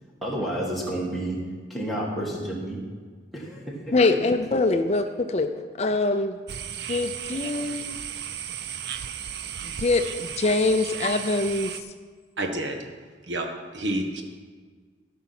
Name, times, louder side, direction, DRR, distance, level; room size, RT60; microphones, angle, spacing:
voice 1, 0.2-1.4 1.7-2.8 3.3-3.9, right 1 dB, ahead, -5 dB, 1.9 m, -30 dB
voice 2, 3.9-5.5 5.8-6.4 6.9-8.0 9.6-11.7, left 3 dB, 35° left, 7 dB, 0.5 m, -24 dB
sound 1, 6.5-11.8, right 8 dB, 60° right, 0.5 m, -35 dB
voice 3, 12.4-12.8 13.3-13.5 13.7-14.2, right 1 dB, 85° right, 3 dB, 1.3 m, -28 dB
13.5 x 5.9 x 5.9 m, 1.5 s
head